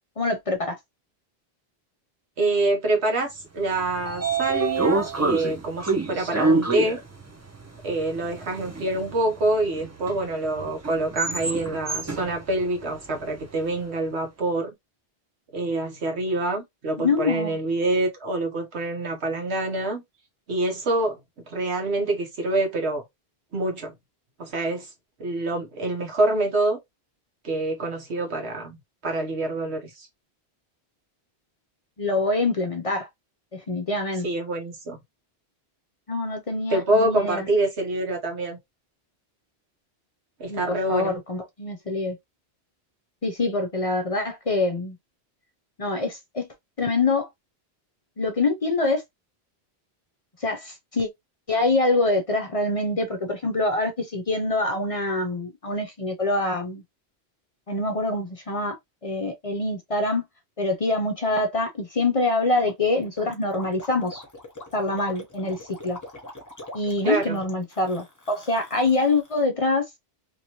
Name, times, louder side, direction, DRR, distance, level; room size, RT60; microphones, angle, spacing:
voice 1, 0.2-0.8 17.0-17.6 32.0-33.1 33.5-34.3 36.1-37.5 40.5-42.2 43.2-45.0 45.8-46.5 46.8-47.3 48.2-49.0 50.4-51.1 51.5-56.8 57.7-58.8 59.0-60.2 60.6-64.2 64.7-66.0 66.7-69.8, left 2 dB, 40° left, 0.6 m, -25 dB
voice 2, 2.4-7.0 7.8-14.7 15.5-20.0 20.5-21.2 21.5-23.0 23.5-23.9 24.4-24.9 25.2-26.8 27.4-30.1 34.2-35.0 36.7-38.6 40.4-41.1 67.0-67.4, right 2 dB, 85° right, 1.3 m, -26 dB
Train / Sliding door, 3.6-13.8, right 3 dB, 20° right, 0.5 m, -28 dB
Gurgling, 62.6-69.5, left 1 dB, 20° left, 1.0 m, -43 dB
3.0 x 2.8 x 2.9 m
omnidirectional pair, 1.1 m